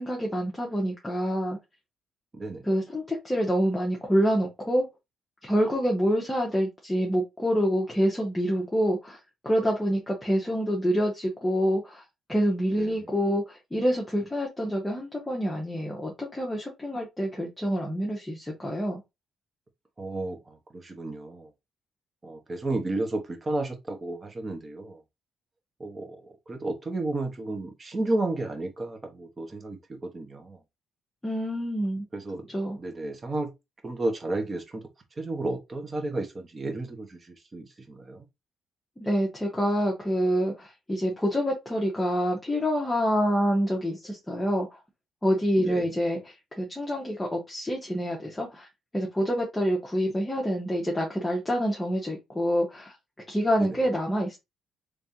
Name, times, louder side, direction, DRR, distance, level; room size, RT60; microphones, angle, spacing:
voice 1, 0.0-1.6 2.6-4.9 5.4-9.2 9.4-12.0 12.3-19.0 31.2-32.0 32.5-32.8 39.0-44.7 45.2-48.7 48.9-52.9 53.3-54.4, equal, 10° left, 1.1 m, -27 dB
voice 2, 2.3-2.6 12.8-13.1 20.0-21.5 22.2-25.0 25.8-26.2 26.5-30.6 32.1-32.5 32.8-33.5 33.8-34.8 35.2-38.2 45.6-45.9, right 2 dB, 30° right, 1.2 m, -32 dB
3.4 x 3.4 x 2.8 m
cardioid pair, 90°, 0 cm